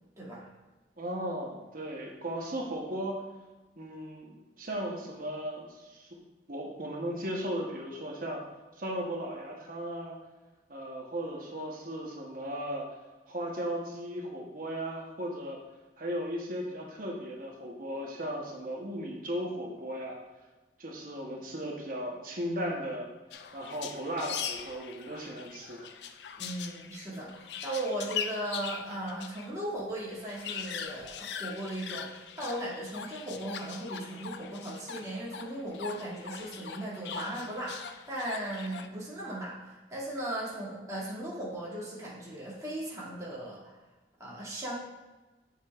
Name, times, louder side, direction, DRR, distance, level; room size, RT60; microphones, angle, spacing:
voice 1, 0.2-0.5 26.4-43.7 44.2-44.7, right 1 dB, 20° right, -8 dB, 2.1 m, -37 dB
voice 2, 1.0-3.2 3.8-6.2 6.5-8.4 8.7-10.2 10.7-13.0 13.3-15.6 16.0-20.2 20.8-23.1 23.5-25.9, equal, 50° right, 0 dB, 1.0 m, -36 dB
sound 1, 23.3-29.5 29.8-29.9 30.1-38.9, left 7 dB, 70° left, 0.4 m, -41 dB
7.2 x 6.7 x 2.4 m, 1.2 s
head